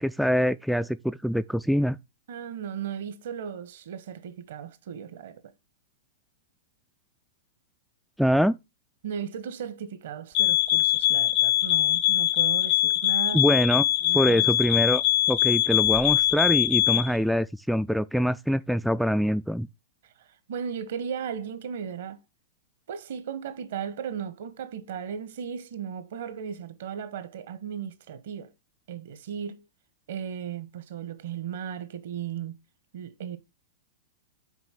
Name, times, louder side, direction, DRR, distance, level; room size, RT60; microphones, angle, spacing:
voice 1, 0.0-2.0 8.2-8.6 13.3-13.8 14.1-19.7, equal, ahead, 0.3 m, -24 dB
voice 2, 2.3-5.4 9.0-13.5 14.0-14.5 20.2-22.2 22.9-28.5 28.9-29.6 30.1-32.5 32.9-33.4, right 8 dB, 60° right, 1.1 m, -36 dB
sound 1, 10.3-17.1, left 14 dB, 45° left, 0.6 m, -22 dB
6.2 x 4.6 x 5.7 m
figure-of-eight pair, 100°, 0 cm